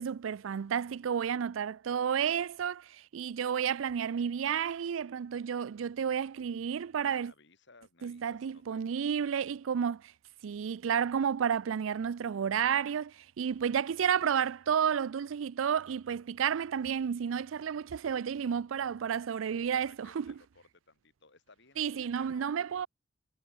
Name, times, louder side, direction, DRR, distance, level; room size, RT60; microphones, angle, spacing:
voice 1, 0.0-7.3 8.0-10.0 10.4-20.3 21.8-22.9, right 7 dB, 85° right, 0.4 m, -31 dB
voice 2, 7.1-9.1 19.7-22.5, left 3 dB, 65° left, 6.2 m, -60 dB
head